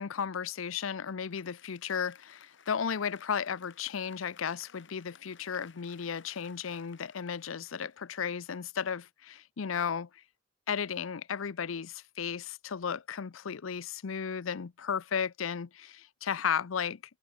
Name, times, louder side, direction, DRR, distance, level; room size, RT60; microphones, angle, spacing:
voice 1, 0.0-10.2 10.7-17.0, left 7 dB, 85° left, 0.6 m, -34 dB
Applause, 1.1-8.7, left 7 dB, 65° left, 3.7 m, -59 dB
head